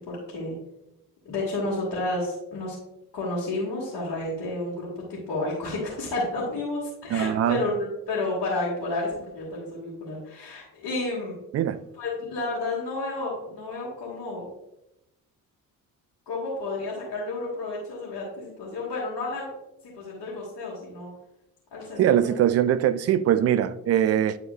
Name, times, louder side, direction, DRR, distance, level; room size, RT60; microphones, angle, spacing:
voice 1, 0.1-0.6 1.2-2.8 3.1-11.3 12.0-14.5 16.3-19.5 20.0-21.1 21.7-22.3, left 2 dB, 55° left, 2.4 m, -31 dB
voice 2, 7.1-7.6 11.5-11.8 22.0-24.4, right 10 dB, 35° right, 0.4 m, -22 dB
10.0 x 4.2 x 2.5 m
figure-of-eight pair, 40°, 47 cm